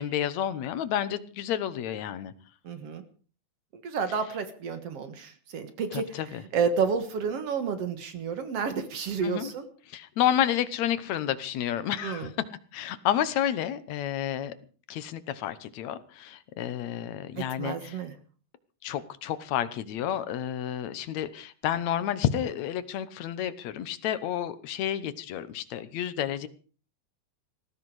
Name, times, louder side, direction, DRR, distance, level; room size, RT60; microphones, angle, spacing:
voice 1, 0.0-2.3 5.9-6.4 9.2-9.5 9.9-12.3 12.7-14.5 14.9-18.0 18.8-26.5, left 10 dB, 65° left, 14 dB, 2.0 m, -30 dB
voice 2, 2.6-3.0 3.8-6.2 6.5-9.7 12.0-12.3 17.6-18.1, right 6 dB, 55° right, 10 dB, 2.2 m, -30 dB
19.5 x 15.5 x 4.9 m, 0.40 s
omnidirectional pair, 4.0 m